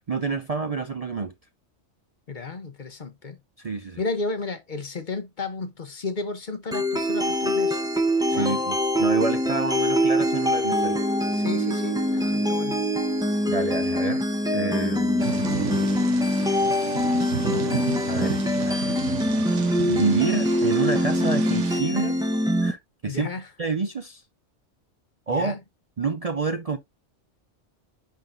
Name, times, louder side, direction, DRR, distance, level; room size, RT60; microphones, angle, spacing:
voice 1, 0.0-1.3 3.6-4.0 8.3-11.0 13.5-14.2 14.5-15.4 18.1-19.0 19.9-22.2 22.6-23.3 23.6-24.2 25.3-25.5 26.0-26.8, right 4 dB, 40° right, 0.6 m, -28 dB
voice 2, 2.3-3.4 4.0-7.8 8.3-8.6 11.3-12.8 23.1-23.4 25.3-25.6, left 3 dB, 45° left, 1.0 m, -33 dB
sound 1, 6.7-22.7, left 1 dB, 5° right, 0.8 m, -24 dB
Thunder / Rain, 15.2-21.8, right 10 dB, 80° right, 1.0 m, -33 dB
10.5 x 3.8 x 2.6 m
omnidirectional pair, 1.2 m